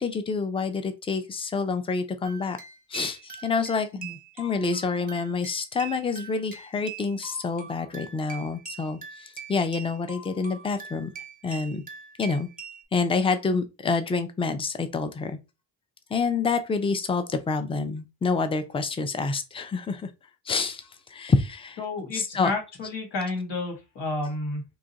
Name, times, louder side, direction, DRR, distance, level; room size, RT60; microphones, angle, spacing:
voice 1, 0.0-2.6 2.9-3.9 4.4-11.1 11.4-11.8 12.2-12.5 12.9-15.4 16.1-20.1 20.5-21.8 22.1-22.5, left 4 dB, 15° left, 0.3 m, -27 dB
sound 1, 2.2-12.8, right 6 dB, 20° right, 0.7 m, -43 dB
voice 2, 21.8-24.6, left 2 dB, 75° left, 1.6 m, -31 dB
2.8 x 2.4 x 3.9 m
wide cardioid pair, 130°, 42 cm